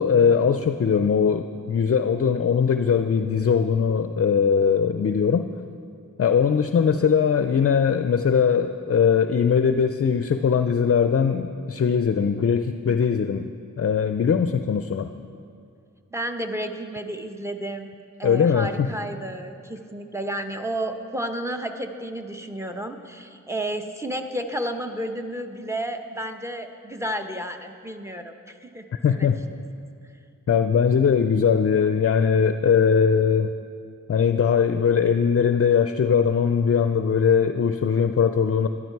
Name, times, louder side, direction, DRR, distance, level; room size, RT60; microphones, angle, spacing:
voice 1, 0.0-5.5 6.2-13.5 13.8-15.1 18.2-18.9 29.0-29.4 30.5-33.5 34.1-38.7, left 6 dB, 50° left, 9 dB, 0.4 m, -20 dB
voice 2, 16.1-17.9 18.2-29.6, right 1 dB, 10° right, 5 dB, 0.8 m, -32 dB
12.5 x 11.0 x 4.6 m, 2.5 s
wide cardioid pair, 55°, 31 cm